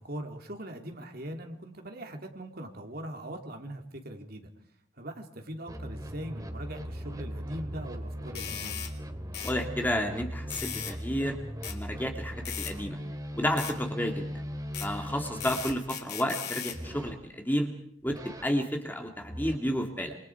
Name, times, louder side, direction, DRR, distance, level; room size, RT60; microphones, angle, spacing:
voice 1, 0.0-4.5 5.0-8.9 14.0-14.1, right 1 dB, 45° right, 4 dB, 3.1 m, -41 dB
sound 1, 5.7-15.7 16.7-17.2 18.0-18.5 19.2-19.6, equal, 15° right, 2.8 m, -39 dB
sound 2, 8.4-8.9 9.3-9.6 10.5-11.0 11.6-11.8 12.5-12.7 13.6-13.8 14.7-14.9 15.4-16.8, left 9 dB, 50° left, 2.9 m, -37 dB
voice 2, 9.4-11.4 11.7-13.0 13.3-14.3 14.8-17.7 18.0-20.2, equal, 10° left, 3 dB, 2.6 m, -31 dB
27.5 x 27.0 x 4.7 m, 0.66 s
head